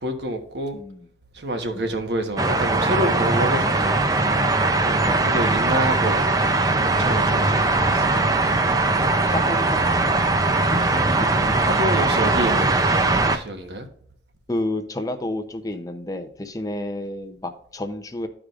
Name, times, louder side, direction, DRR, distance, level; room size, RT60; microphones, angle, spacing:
voice 1, 0.0-0.8 1.3-4.0 4.8-6.2 6.8-8.1 11.6-12.8 13.3-13.9, right 1 dB, 75° right, 1.1 m, -27 dB
voice 2, 0.7-1.1 1.7-2.0 5.0-5.3 6.9-7.2 8.1-8.3 9.3-10.3 10.6-11.0 11.5-11.6 14.5-18.3, left 1 dB, 20° left, 0.6 m, -31 dB
sound 1, 2.4-13.4, right 2 dB, 20° right, 0.5 m, -20 dB
13.0 x 4.9 x 2.5 m
head